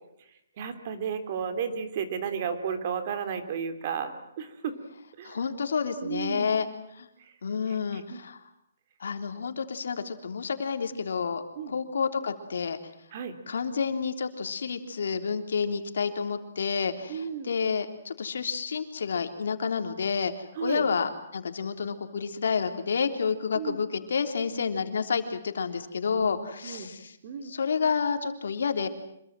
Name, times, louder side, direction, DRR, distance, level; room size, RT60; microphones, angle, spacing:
voice 1, 0.6-4.7 5.2-5.4 6.0-6.5 7.9-8.2 11.5-11.7 13.1-13.3 17.1-17.5 20.5-20.8 23.5-23.8 26.1-26.3 26.6-26.9 27.2-27.5, right 7 dB, 40° right, 9 dB, 3.4 m, -33 dB
voice 2, 5.2-6.7 7.0-7.1 7.4-8.4 9.0-12.8 13.5-20.3 20.6-27.1 27.4-28.9, left 5 dB, 75° left, 7 dB, 3.4 m, -29 dB
26.5 x 23.0 x 7.7 m, 0.77 s
hypercardioid pair, 165°, 0 cm